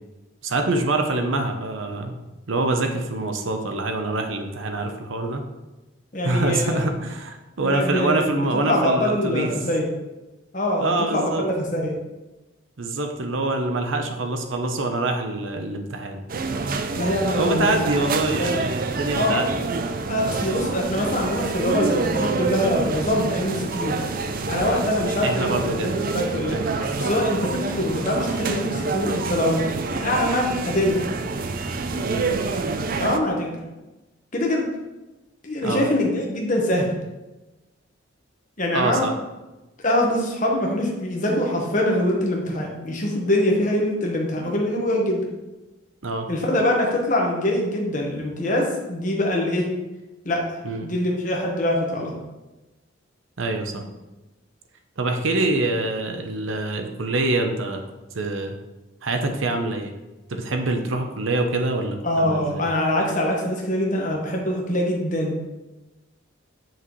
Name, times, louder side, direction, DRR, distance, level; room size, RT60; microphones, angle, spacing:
voice 1, 0.4-2.1 2.5-5.4 6.2-9.5 10.8-11.4 12.8-16.2 17.4-19.5 25.2-26.0 26.5-27.2 32.0-32.4 35.6-35.9 38.7-39.1 46.0-46.3 50.6-50.9 53.4-53.8 55.0-57.8 58.1-58.6 59.0-59.9 60.3-62.7, right 2 dB, 75° right, 5 dB, 0.8 m, -25 dB
voice 2, 6.1-6.8 7.6-9.9 10.5-11.9 16.9-17.8 18.2-18.6 18.9-19.5 20.1-24.0 24.5-26.6 27.0-29.7 30.0-31.0 32.9-33.6 34.3-34.6 35.4-36.9 38.6-39.0 39.8-45.2 46.3-49.7 50.2-52.1 62.0-65.4, left 1 dB, 40° left, -1 dB, 1.3 m, -24 dB
sound 1, 16.3-33.2, right 3 dB, 45° right, 0.4 m, -27 dB
7.4 x 6.0 x 3.1 m, 1.1 s
head